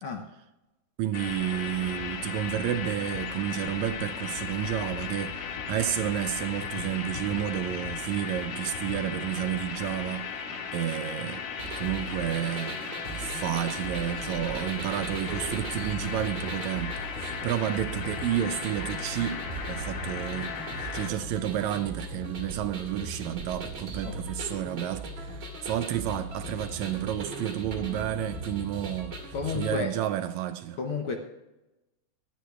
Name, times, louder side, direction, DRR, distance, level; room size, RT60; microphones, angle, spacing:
voice 1, 1.0-10.3 10.7-11.5 11.7-12.8 13.1-30.8, right 11 dB, 80° right, 1.8 m, -31 dB
sound 1, 1.1-21.1, left 6 dB, 80° left, 2.8 m, -36 dB
sound 2, 11.6-29.8, right 2 dB, 45° right, 2.7 m, -38 dB
voice 2, 29.3-29.9 30.8-31.2, left 5 dB, 60° left, 1.5 m, -31 dB
23.0 x 10.5 x 2.4 m
omnidirectional pair, 3.5 m